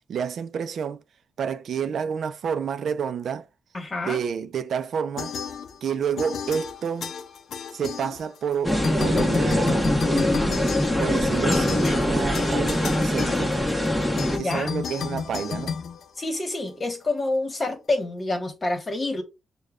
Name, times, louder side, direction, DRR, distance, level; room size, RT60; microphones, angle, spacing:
voice 1, 0.1-1.0 1.4-3.5 4.0-5.3 5.8-7.1 7.7-10.0 11.0-13.6 14.4-15.8, right 7 dB, 65° right, 0.4 m, -29 dB
voice 2, 3.7-4.2 14.3-14.8 16.1-19.2, left 2 dB, 30° left, 1.3 m, -27 dB
sound 1, 5.2-5.9 6.2-8.5 8.8-16.7, left 7 dB, 70° left, 0.4 m, -33 dB
sound 2, 8.6-14.4, left 1 dB, 5° left, 1.0 m, -23 dB
6.5 x 2.2 x 2.4 m
cardioid pair, 85°, 0 cm